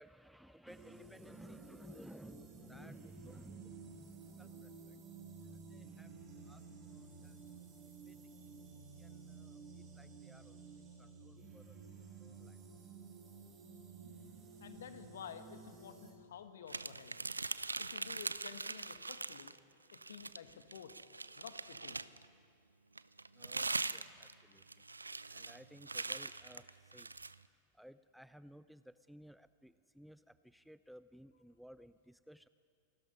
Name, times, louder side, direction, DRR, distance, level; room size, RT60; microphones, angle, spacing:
voice 1, 0.0-8.6 9.0-12.8 23.3-24.8 25.3-27.1 27.7-32.5, equal, ahead, 14 dB, 0.5 m, -58 dB
sound 1, 0.7-16.1, right 5 dB, 30° right, 5.9 m, -53 dB
voice 2, 14.6-17.2 17.8-19.5 19.9-20.9 21.3-22.0, left 8 dB, 60° left, 9 dB, 1.7 m, -51 dB
sound 2, 16.7-19.6 19.9-22.2 23.0-27.3, right 3 dB, 80° right, 0.5 m, -42 dB
28.0 x 19.0 x 5.6 m, 2.3 s
figure-of-eight pair, 90°, 0 cm